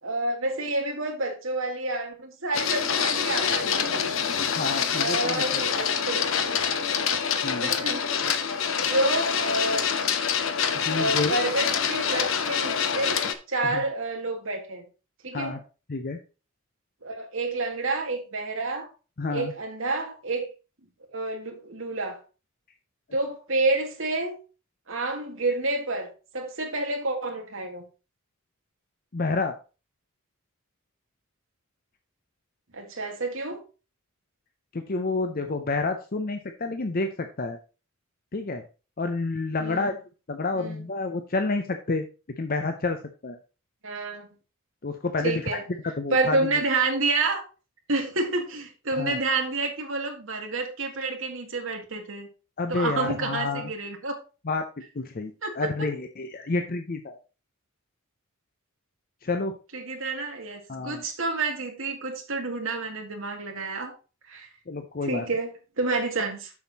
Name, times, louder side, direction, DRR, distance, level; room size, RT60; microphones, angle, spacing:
voice 1, 0.0-4.1 5.0-7.0 7.6-8.0 8.9-10.0 10.9-13.2 13.5-14.8 15.2-15.6 17.0-18.9 19.3-20.5 21.1-22.2 23.1-24.4 24.9-26.1 26.3-27.8 32.7-33.6 39.6-39.8 40.5-40.8 43.8-44.3 45.2-45.6 46.1-47.4 47.9-52.3 52.7-54.2 55.4-55.7 59.7-63.9 64.3-64.5 65.0-66.5, right 2 dB, 65° right, 2.0 m, -29 dB
Printer, 2.5-13.3, left 7 dB, 65° left, 0.9 m, -26 dB
voice 2, 4.5-5.6 7.4-7.7 10.8-11.4 13.6-13.8 15.3-15.6 15.9-16.2 19.2-19.5 29.1-29.5 34.7-37.6 38.3-38.6 39.0-39.9 40.3-42.1 42.4-43.4 44.8-45.6 45.8-46.5 48.9-49.2 52.6-53.7 54.4-54.7 54.9-57.2 59.2-59.6 60.7-61.0 64.7-65.2, left 3 dB, 45° left, 0.7 m, -29 dB
7.2 x 6.5 x 4.1 m
head